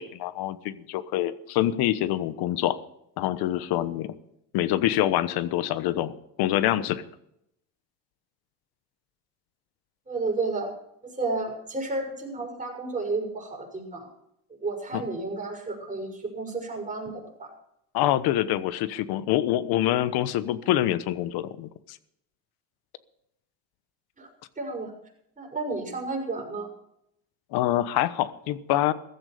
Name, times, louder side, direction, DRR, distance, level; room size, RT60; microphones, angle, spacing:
voice 1, 0.0-2.8 3.2-4.1 4.5-7.0 14.9-15.0 17.9-22.0 27.5-28.9, left 13 dB, 70° left, 15 dB, 1.2 m, -26 dB
voice 2, 10.1-10.7 11.0-14.1 14.6-17.5 24.2-24.3 24.6-24.9 25.4-26.7, right 3 dB, 20° right, 0 dB, 6.3 m, -32 dB
15.0 x 13.5 x 5.1 m, 0.78 s
supercardioid pair, 95°, 38 cm